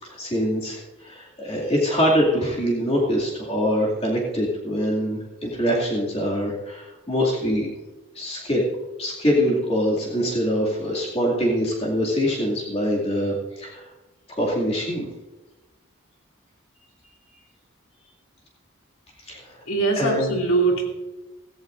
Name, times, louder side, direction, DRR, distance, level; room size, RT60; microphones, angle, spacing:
voice 1, 0.0-7.7 8.1-8.6 9.0-13.8 14.3-15.0 19.3-19.4 20.0-20.4, equal, 30° left, -3 dB, 2.4 m, -24 dB
voice 2, 19.7-20.8, right 3 dB, 75° left, 0 dB, 2.7 m, -21 dB
16.0 x 15.0 x 2.6 m, 1.1 s
head